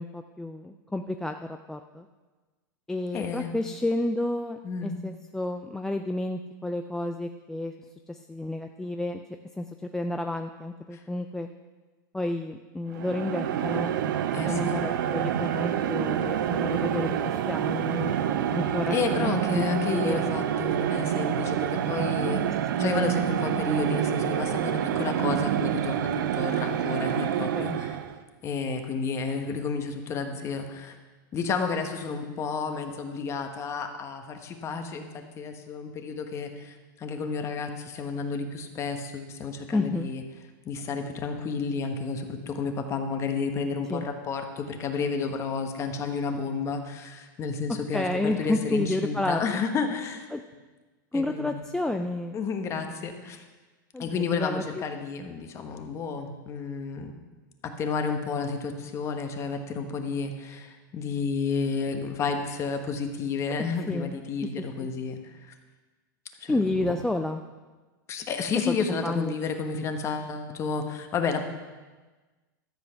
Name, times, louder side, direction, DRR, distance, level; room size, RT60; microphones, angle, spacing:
voice 1, 0.0-1.3 1.7-2.1 2.9-7.7 8.1-9.2 9.6-9.7 9.9-11.5 12.1-13.9 14.4-18.1 18.5-19.6 19.9-20.3 22.8-23.1 27.5-27.8 39.7-40.1 43.9-44.1 47.9-49.6 50.3-50.4 51.1-52.4 53.9-54.6 55.2-55.3 63.9-64.1 64.8-64.9 66.5-67.4 68.7-69.4, left 2 dB, 5° left, 5 dB, 0.3 m, -30 dB
voice 2, 3.1-3.5 4.6-4.9 10.9-11.0 14.3-14.7 18.9-28.0 28.4-30.9 31.3-35.1 35.4-40.2 40.6-50.3 51.1-51.6 52.3-53.4 54.0-57.1 57.6-65.5 66.4-67.0 68.1-71.4, left 5 dB, 25° left, 6 dB, 1.2 m, -31 dB
sound 1, 12.9-28.2, right 10 dB, 70° right, 0.7 m, -27 dB
13.0 x 7.7 x 5.8 m, 1.3 s
supercardioid pair, 140°, 11 cm